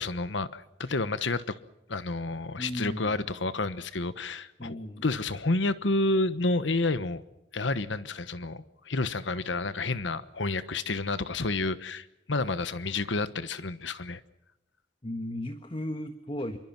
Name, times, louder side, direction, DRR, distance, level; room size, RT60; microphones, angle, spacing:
voice 1, 0.0-1.6 1.9-7.2 7.5-14.2, left 2 dB, 70° left, 14 dB, 1.2 m, -30 dB
voice 2, 2.6-3.2 4.6-5.0 15.0-16.6, left 1 dB, 30° left, 8 dB, 1.4 m, -35 dB
27.0 x 24.0 x 6.1 m, 0.89 s
head